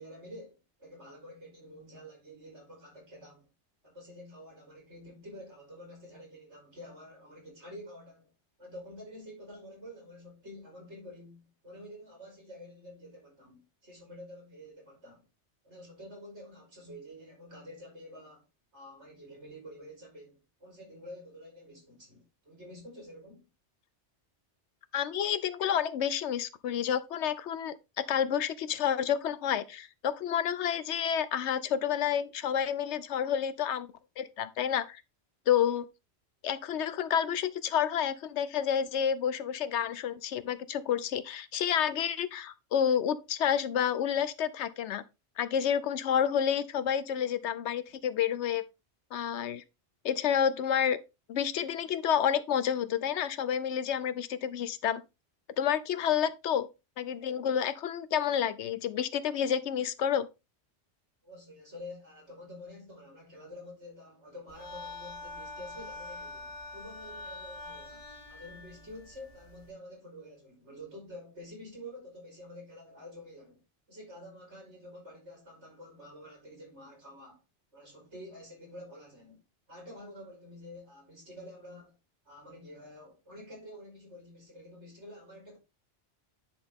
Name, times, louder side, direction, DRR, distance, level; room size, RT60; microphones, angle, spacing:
voice 1, 0.0-3.5 3.8-8.3 8.6-15.3 15.6-18.4 18.7-23.5 61.2-73.6 73.9-77.4 77.7-79.4 79.7-82.0 82.2-85.6, left 1 dB, 75° right, 4.4 m, -48 dB
voice 2, 24.9-27.7 28.1-33.9 34.2-35.0 35.5-35.9 36.4-45.0 45.4-48.6 49.1-49.6 50.0-51.0 51.3-55.0 55.6-56.7 57.0-60.3, left 9 dB, 75° left, 0.9 m, -29 dB
sound 1, 64.5-69.7, left 3 dB, 30° left, 1.7 m, -45 dB
10.0 x 4.2 x 3.5 m
omnidirectional pair, 1.2 m